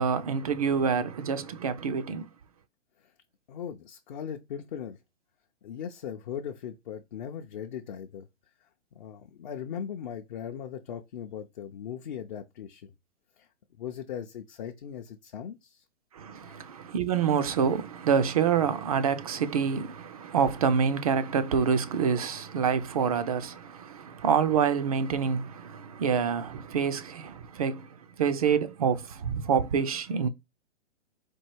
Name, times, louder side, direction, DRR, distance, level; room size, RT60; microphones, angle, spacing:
voice 1, 0.0-2.3 16.1-27.9 28.2-30.3, right 6 dB, 35° right, 0.4 m, -27 dB
voice 2, 3.5-5.0 5.6-8.3 8.6-12.9 13.4-13.5 13.8-15.8 16.4-16.6, left 8 dB, 40° left, 0.5 m, -39 dB
4.5 x 2.4 x 4.4 m
hypercardioid pair, 140°, 36 cm